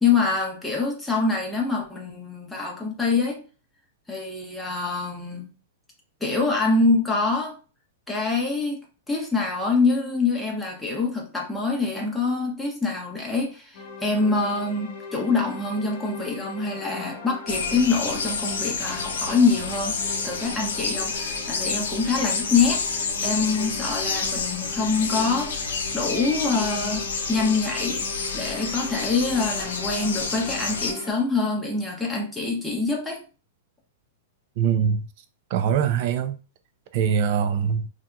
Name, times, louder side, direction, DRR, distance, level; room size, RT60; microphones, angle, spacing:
voice 1, 0.0-3.4 4.1-5.6 6.2-7.5 8.1-22.8 23.2-25.6 25.9-33.2, left 4 dB, 5° left, 0.8 m, -25 dB
sound 1, 13.7-31.1, left 4 dB, 60° left, 1.0 m, -39 dB
sound 2, 17.5-30.9, left 4 dB, 80° left, 0.5 m, -29 dB
voice 2, 34.6-35.1 35.5-36.4 36.9-37.9, right 7 dB, 50° right, 0.4 m, -23 dB
2.7 x 2.4 x 2.3 m
hypercardioid pair, 130°, 0 cm